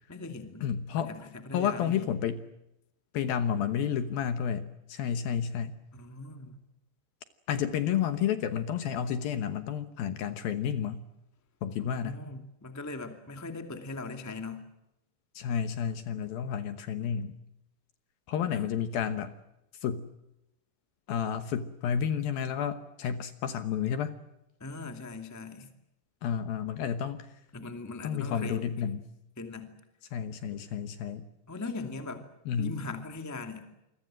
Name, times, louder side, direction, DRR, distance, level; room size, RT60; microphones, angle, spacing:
voice 1, 0.1-0.7 1.0-2.1 5.9-6.6 11.8-14.6 18.5-18.7 24.6-25.7 27.5-28.8 29.4-29.7 31.5-32.2 32.6-33.7, left 3 dB, 10° left, 6 dB, 0.8 m, -40 dB
voice 2, 0.6-1.1 1.5-2.4 3.1-5.8 7.5-11.1 11.6-12.2 15.4-17.4 18.3-19.3 19.8-20.1 21.1-24.1 26.2-27.3 28.0-29.0 30.1-31.3 32.5-32.8, left 8 dB, 70° left, 10 dB, 2.5 m, -31 dB
28.0 x 23.0 x 7.7 m, 0.89 s
omnidirectional pair, 5.2 m